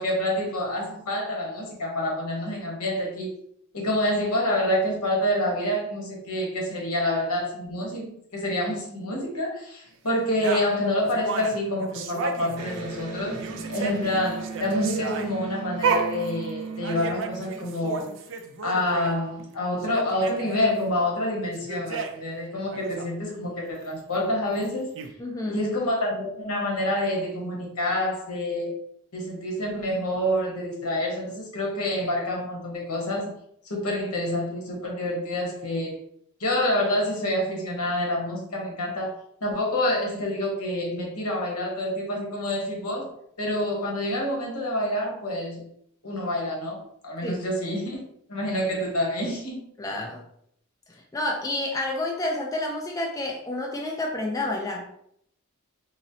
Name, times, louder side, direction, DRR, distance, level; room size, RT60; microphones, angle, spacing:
voice 1, 0.0-3.3 3.7-13.4 13.7-18.1 18.6-24.9 25.5-28.7 29.1-33.3 33.7-36.0 36.4-43.1 43.4-45.7 46.0-46.8 47.0-48.0 48.3-49.7, left 1 dB, 80° left, -1 dB, 1.0 m, -27 dB
sound 1, 10.4-13.0 13.3-19.1 19.5-19.6 19.8-20.7 21.4-22.3 22.7-23.1 24.6-24.7 24.9-25.1, right 5 dB, 60° right, 0.4 m, -33 dB
Electric guitar, 12.5-18.0, right 4 dB, 85° right, 0.8 m, -37 dB
voice 2, 25.2-25.6 47.2-47.4 49.8-50.2 50.9-54.9, left 2 dB, 15° left, 0 dB, 0.3 m, -29 dB
4.0 x 2.0 x 2.6 m, 0.70 s
head